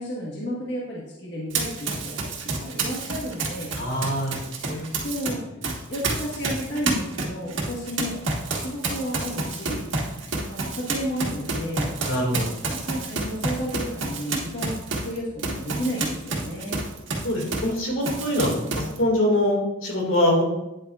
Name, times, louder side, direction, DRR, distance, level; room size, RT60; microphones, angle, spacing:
voice 1, 0.0-3.7 5.0-5.4 5.9-8.2 8.5-9.8 10.5-11.9 12.7-16.8, equal, 55° left, -5 dB, 1.4 m, -32 dB
Run, 1.5-5.3 5.6-17.8 18.0-19.0, right 3 dB, 75° right, 1.5 m, -29 dB
voice 2, 3.8-4.4 4.7-4.9 12.0-12.5 17.2-18.6 19.0-20.4, left 1 dB, 85° left, -1 dB, 2.3 m, -23 dB
9.4 x 8.1 x 2.5 m, 0.93 s
head